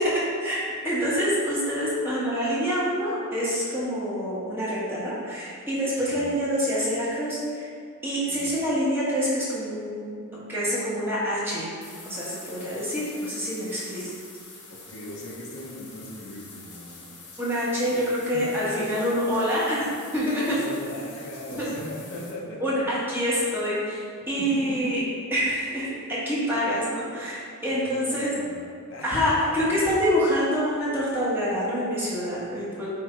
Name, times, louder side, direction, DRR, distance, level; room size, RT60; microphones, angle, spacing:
voice 1, 0.0-7.7 8.0-11.7 12.0-14.1 17.4-19.9 20.1-20.6 21.6-21.7 22.6-25.0 25.3-28.3 29.0-32.9, equal, 10° right, -9 dB, 1.5 m, -26 dB
voice 2, 6.0-6.3 8.3-8.5 14.7-17.2 17.8-18.0 18.3-18.5 18.8-19.0 20.5-22.9 24.4-25.1 27.7-29.7, left 1 dB, 60° left, -3 dB, 1.0 m, -39 dB
sound 1, 11.8-22.3, left 3 dB, 90° left, 1.2 m, -46 dB
8.3 x 2.8 x 4.6 m, 2.2 s
head